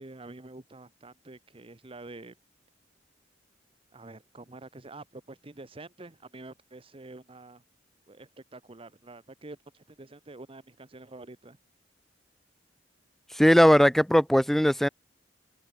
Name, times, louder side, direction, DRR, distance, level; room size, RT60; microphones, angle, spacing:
voice 1, 0.0-2.3 3.9-7.6 8.1-11.6, right 2 dB, 30° right, 1.0 m, -47 dB
voice 2, 13.3-14.9, equal, ahead, 0.4 m, -19 dB
head